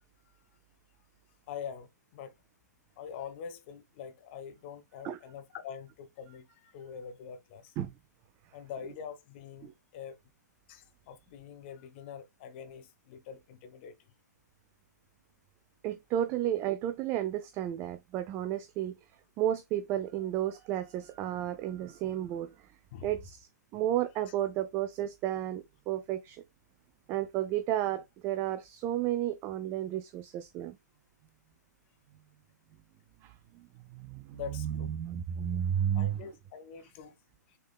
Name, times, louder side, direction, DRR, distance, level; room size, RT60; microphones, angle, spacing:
voice 1, 1.5-2.3 3.0-7.7 8.5-10.2 10.7-13.9 22.9-23.1 34.3-34.9 35.9-37.2, left 7 dB, 40° left, 0.8 m, -44 dB
voice 2, 15.8-19.0 19.4-22.7 23.0-26.4 27.1-30.8 33.2-36.2, right 11 dB, 25° right, 0.4 m, -32 dB
6.6 x 3.6 x 2.2 m
figure-of-eight pair, 120°, 10 cm